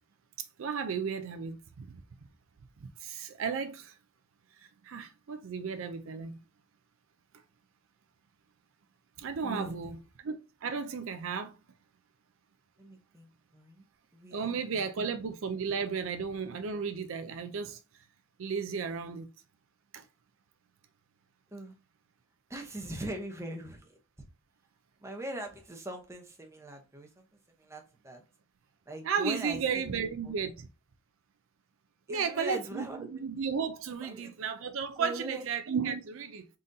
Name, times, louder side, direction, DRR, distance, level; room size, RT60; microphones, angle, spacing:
voice 1, 0.6-1.9 3.0-4.0 4.6-6.4 9.2-11.5 14.3-17.8 18.4-19.3 19.9-20.0 29.0-30.7 32.1-36.5, right 6 dB, 65° right, 0.4 m, -34 dB
voice 2, 9.4-10.0 12.8-13.8 14.1-14.8 21.5-21.7 22.5-24.0 25.0-27.2 27.6-28.2 28.9-30.3 32.1-33.3 34.0-34.3 35.0-35.4, right 1 dB, 15° right, 0.8 m, -41 dB
3.9 x 3.8 x 2.6 m
head